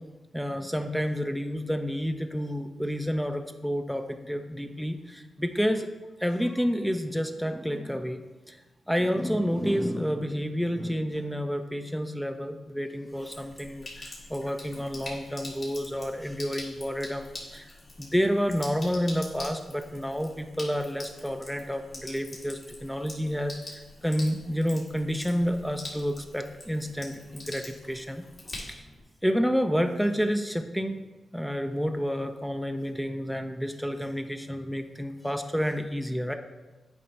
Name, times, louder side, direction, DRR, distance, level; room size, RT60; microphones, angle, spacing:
voice 1, 0.3-5.9 6.2-8.6 8.9-28.3 28.7-28.9 29.2-31.0 31.3-36.3, equal, ahead, 6 dB, 0.5 m, -29 dB
Sink (filling or washing), 13.1-29.0, left 2 dB, 50° left, 2.2 m, -44 dB
8.4 x 3.3 x 5.4 m, 1.2 s
cardioid pair, 75°, 0 cm